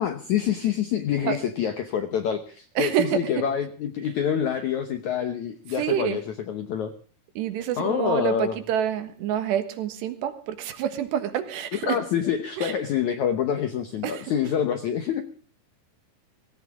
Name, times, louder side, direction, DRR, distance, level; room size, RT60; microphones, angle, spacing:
voice 1, 0.0-6.9 7.8-8.6 11.7-15.2, left 8 dB, 75° left, 8 dB, 1.7 m, -26 dB
voice 2, 2.8-3.2 5.8-6.2 7.4-12.0 12.6-12.7 14.0-14.3, right 10 dB, 85° right, 8 dB, 3.7 m, -27 dB
17.5 x 17.5 x 3.7 m, 0.40 s
omnidirectional pair, 4.8 m